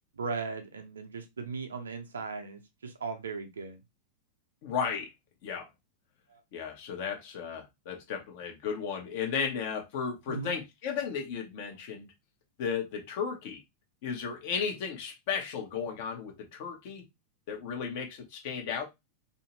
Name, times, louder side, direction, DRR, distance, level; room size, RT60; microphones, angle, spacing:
voice 1, 0.1-3.8 6.3-6.4 10.3-10.6, right 4 dB, 70° right, 0.6 m, -37 dB
voice 2, 4.6-5.1 5.4-5.7 6.5-12.1 12.6-13.6 14.0-17.0 17.5-18.8, left 6 dB, 50° left, 0.9 m, -34 dB
2.7 x 2.7 x 2.9 m
figure-of-eight pair, 90°, 0 cm